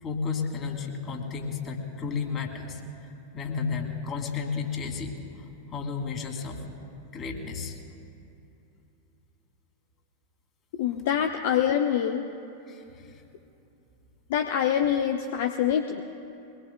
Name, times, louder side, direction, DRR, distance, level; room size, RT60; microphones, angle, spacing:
voice 1, 0.0-5.2 5.7-6.6 7.1-7.8 12.7-13.2, left 5 dB, 30° left, 3 dB, 2.5 m, -33 dB
voice 2, 10.8-12.2 14.3-16.0, left 9 dB, 55° left, 6 dB, 0.7 m, -25 dB
23.0 x 20.5 x 2.3 m, 2.8 s
figure-of-eight pair, 90°, 0 cm